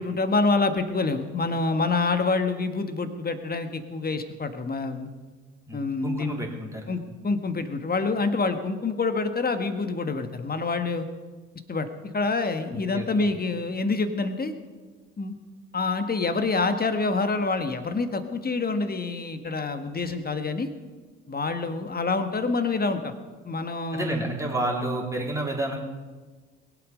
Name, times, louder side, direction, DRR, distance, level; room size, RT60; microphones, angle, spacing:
voice 1, 0.0-5.1 5.7-6.4 6.9-11.1 11.7-11.9 12.1-14.5 15.2-15.4 15.7-20.7 21.3-23.1 23.4-24.3, left 3 dB, 25° left, 9 dB, 1.6 m, -27 dB
voice 2, 5.7-7.0 12.7-13.3 23.9-25.8, right 1 dB, 10° right, -2 dB, 3.7 m, -30 dB
21.5 x 8.5 x 5.3 m, 1.4 s
hypercardioid pair, 55°, 36 cm